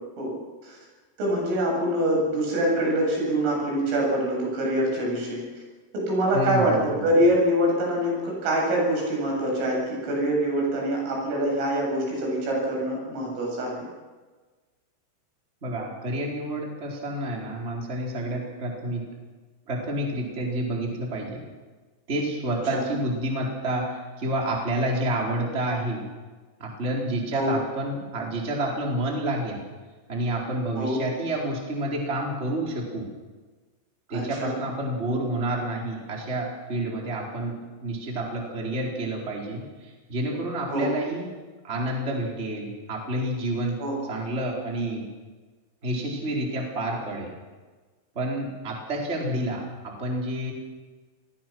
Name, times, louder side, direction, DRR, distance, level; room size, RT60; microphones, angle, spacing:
voice 1, 1.2-5.4 5.9-13.8 22.7-22.9 27.3-27.6 30.8-31.0 34.1-34.5 40.7-40.9 43.8-44.0, right 1 dB, 75° right, -1 dB, 10.5 m, -25 dB
voice 2, 6.3-7.0 15.6-19.0 19.7-21.4 22.1-26.1 26.6-29.6 30.1-33.1 34.1-41.2 41.6-43.8 44.1-45.0 45.8-47.3 48.1-50.5, right 1 dB, 15° right, -1 dB, 3.9 m, -29 dB
28.5 x 20.5 x 6.2 m, 1.3 s
omnidirectional pair, 5.8 m